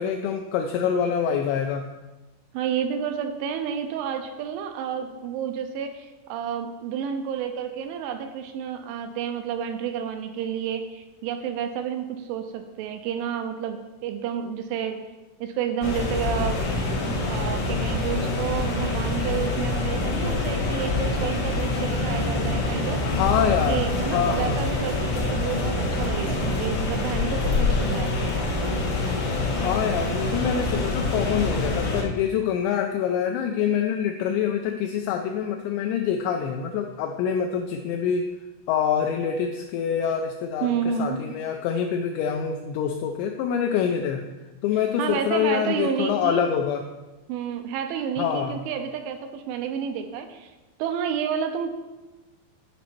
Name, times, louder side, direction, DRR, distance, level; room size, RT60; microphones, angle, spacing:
voice 1, 0.0-1.8 23.0-24.6 29.6-38.3 38.7-44.2 44.6-46.9 48.2-48.6, left 8 dB, 85° left, 4 dB, 2.5 m, -25 dB
voice 2, 2.5-15.0 15.4-16.6 17.0-23.0 23.7-28.8 40.6-41.2 45.0-46.4 47.3-50.5 50.8-51.7, right 8 dB, 85° right, 6 dB, 2.9 m, -30 dB
sound 1, 15.8-32.0, left 2 dB, 65° left, 1.4 m, -26 dB
10.0 x 5.2 x 4.4 m, 1.1 s
omnidirectional pair, 5.6 m